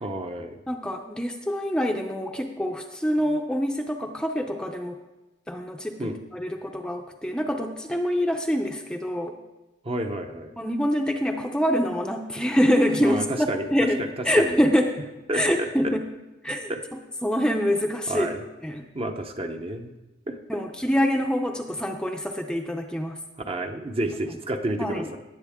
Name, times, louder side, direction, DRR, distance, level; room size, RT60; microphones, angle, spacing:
voice 1, 0.0-0.6 6.0-6.2 9.8-10.5 13.0-13.6 14.4-14.6 15.3-15.9 16.7-16.8 18.1-18.4 18.9-19.9 20.3-20.4 23.5-25.2, right 1 dB, 30° right, 5 dB, 0.8 m, -30 dB
voice 2, 0.7-5.0 5.5-9.4 10.6-15.0 15.3-16.1 16.4-16.7 17.2-18.3 18.6-18.8 20.5-23.2 24.8-25.1, equal, 5° left, 3 dB, 0.6 m, -25 dB
18.5 x 7.8 x 3.6 m, 1.0 s
head